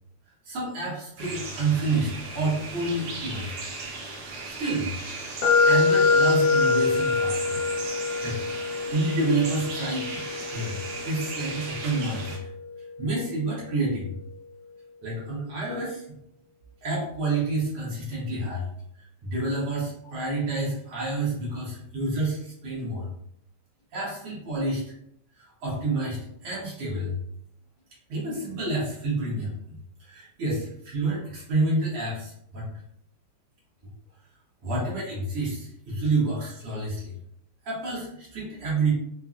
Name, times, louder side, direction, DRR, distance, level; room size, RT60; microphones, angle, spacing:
voice 1, 0.4-3.5 4.4-5.0 5.6-7.6 8.2-10.2 10.5-12.4 13.0-14.2 15.0-16.2 16.8-18.7 19.0-23.1 23.9-24.8 25.4-27.2 28.1-32.7 34.6-37.1 37.6-38.9, right 2 dB, 55° right, -7 dB, 1.7 m, -29 dB
sound 1, 1.2-12.4, right 3 dB, 70° right, 1.4 m, -37 dB
sound 2, 5.4-13.3, left 4 dB, 85° left, 1.3 m, -25 dB
5.6 x 2.3 x 2.4 m, 0.76 s
omnidirectional pair, 3.7 m